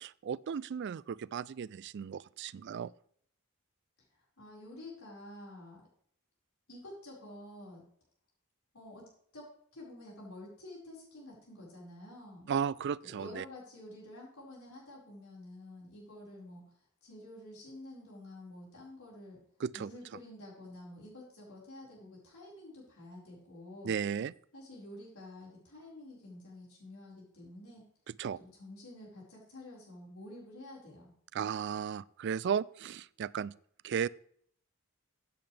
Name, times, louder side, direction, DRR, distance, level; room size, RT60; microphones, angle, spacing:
voice 1, 0.0-2.9 12.5-13.4 19.6-19.9 23.8-24.3 28.2-28.4 31.3-33.5 33.8-34.1, right 7 dB, 55° right, 21 dB, 0.3 m, -35 dB
voice 2, 4.1-5.8 6.7-7.8 8.7-12.5 13.0-19.4 19.7-23.9 24.5-27.8 28.4-31.1, left 1 dB, 80° left, -4 dB, 4.8 m, -49 dB
13.5 x 8.8 x 3.3 m, 0.62 s
head